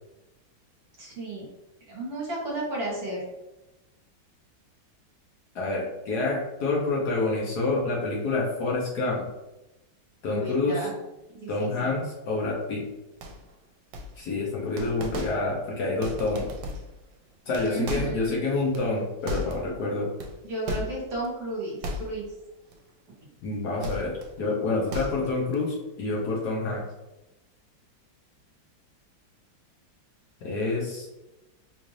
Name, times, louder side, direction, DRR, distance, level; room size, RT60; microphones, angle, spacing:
voice 1, 1.0-1.4 1.9-3.2 10.2-10.9 11.4-11.9 17.6-18.3 20.4-22.2, right 2 dB, 55° right, -4 dB, 1.4 m, -33 dB
voice 2, 5.5-9.3 10.2-10.9 11.5-12.8 14.2-16.5 17.5-20.1 23.4-26.8 30.4-31.1, left 3 dB, 65° left, -3 dB, 1.2 m, -28 dB
sound 1, 13.2-13.6 13.9-14.4 14.8-15.6 16.0-17.0 17.4-19.8 20.2-21.3 21.8-22.4 22.7-22.9 23.8-24.4 24.7-25.6, equal, 80° right, 1.3 m, -36 dB
3.9 x 2.5 x 3.1 m, 0.97 s
omnidirectional pair, 2.1 m